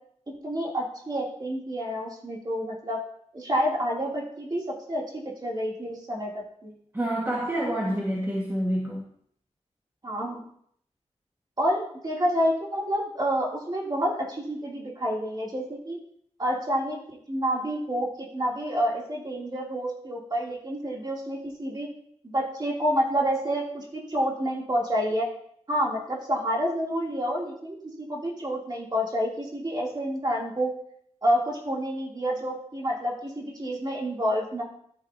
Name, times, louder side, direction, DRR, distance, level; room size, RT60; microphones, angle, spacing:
voice 1, 0.4-3.0 3.3-6.7 10.0-10.4 11.6-16.0 16.4-21.9 22.2-25.3 25.7-30.7 31.2-34.6, equal, 35° right, -3 dB, 2.7 m, -28 dB
voice 2, 6.9-9.1, right 1 dB, 20° right, -3 dB, 1.5 m, -27 dB
13.0 x 8.7 x 2.7 m, 0.66 s
wide cardioid pair, 105°, 12 cm